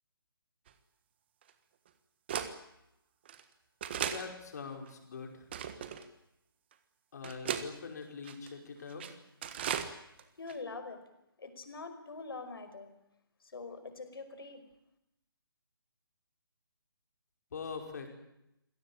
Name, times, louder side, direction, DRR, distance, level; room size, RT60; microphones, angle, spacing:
sound 1, 0.7-0.8 1.5-1.6 2.3-2.5 3.3-3.4 3.8-4.3 4.9-5.0 5.5-6.0 6.7-6.8 7.2-7.7 8.3-8.5 8.9-9.1 9.4-9.9 10.2-10.3 10.5-10.6, right 9 dB, 25° right, 1.4 m, -36 dB
voice 1, 4.0-5.5 7.1-9.2 17.5-18.1, left 5 dB, 45° left, 3 dB, 5.3 m, -43 dB
voice 2, 10.4-11.0 11.4-12.9 13.5-14.6, left 3 dB, 75° left, 9 dB, 5.2 m, -44 dB
26.5 x 17.5 x 8.8 m, 0.85 s
hypercardioid pair, 170°, 13 cm